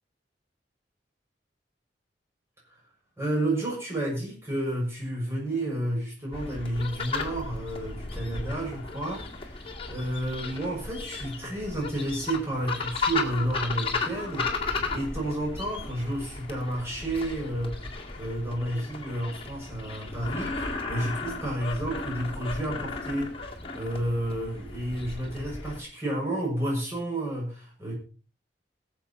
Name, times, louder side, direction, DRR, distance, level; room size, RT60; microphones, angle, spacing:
voice 1, 3.2-27.9, right 1 dB, 15° right, -3 dB, 6.3 m, -31 dB
sound 1, 6.3-25.8, left 4 dB, 30° left, 2.0 m, -35 dB
21.5 x 7.4 x 4.3 m, 0.35 s
head